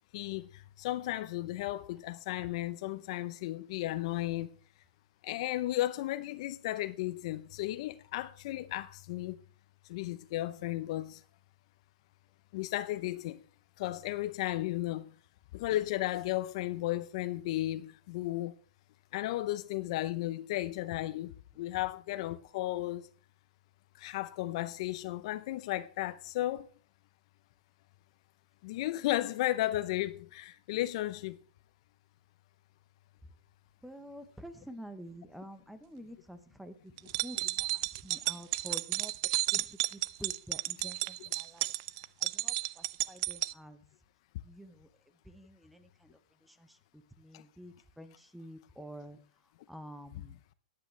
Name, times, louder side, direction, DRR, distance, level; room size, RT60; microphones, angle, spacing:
voice 1, 0.1-4.6 5.2-9.4 9.9-11.2 12.5-13.4 13.8-15.1 15.5-18.5 19.1-23.1 23.9-26.7 28.6-31.4 47.3-47.4, left 16 dB, 50° left, 0.7 m, -34 dB
voice 2, 33.8-39.1 39.5-41.7 42.2-43.9 44.4-44.9 45.2-49.2 49.7-50.4, equal, ahead, 0.9 m, -49 dB
sound 1, 37.0-43.5, right 19 dB, 45° right, 0.4 m, -33 dB
14.0 x 9.9 x 3.3 m
hypercardioid pair, 135°, 4 cm